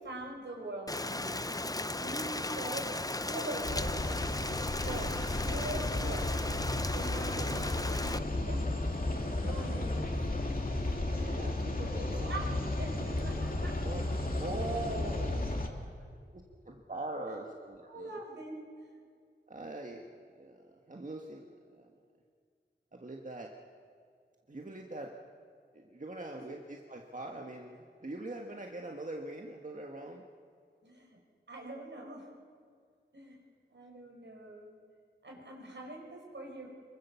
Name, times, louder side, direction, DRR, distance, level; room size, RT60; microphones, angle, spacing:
voice 1, 0.0-1.7 2.0-3.0 3.3-4.1 4.8-6.4 6.9-7.7 8.0-8.6 9.4-10.2 12.2-12.5 12.8-13.8 17.3-17.4 17.9-18.9 26.4-26.5 30.8-31.2 31.5-32.3 33.1-33.4 33.7-34.7 35.2-36.7, right 2 dB, 70° right, 0 dB, 5.2 m, -43 dB
Rain, 0.9-8.2, left 2 dB, 20° left, 0.6 m, -36 dB
sound 1, 3.6-15.7, left 2 dB, 50° left, 2.4 m, -33 dB
voice 2, 7.3-7.8 10.9-12.4 13.0-15.4 16.3-18.2 19.5-20.1 20.4-20.6 20.9-21.9 22.9-23.5 24.5-25.1 25.7-30.2, right 2 dB, 40° right, 1 dB, 1.6 m, -42 dB
24.0 x 23.0 x 7.0 m, 2.1 s
wide cardioid pair, 55°, 19 cm